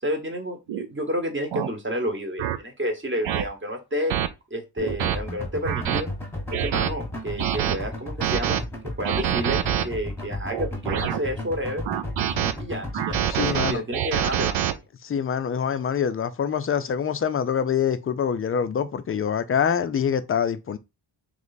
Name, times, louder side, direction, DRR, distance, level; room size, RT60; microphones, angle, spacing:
voice 1, 0.0-4.1 4.5-6.1 6.5-8.7 9.0-11.8 12.6-14.8, equal, 25° right, 1.0 m, -30 dB
sound 1, 0.7-0.9 1.5-1.7 2.4-2.6 3.2-3.4 4.1-4.3 4.8-5.2 5.6-6.0 6.5-6.9 7.4-7.8 8.2-8.6 9.0-9.8 10.5-11.2 11.8-12.5 12.9-14.7, right 11 dB, 75° right, 0.6 m, -25 dB
sound 2, 4.8-13.3, left 1 dB, 5° left, 1.1 m, -34 dB
voice 2, 13.3-13.8 15.0-20.8, left 7 dB, 30° left, 0.4 m, -25 dB
3.3 x 3.2 x 4.0 m
wide cardioid pair, 130°, 46 cm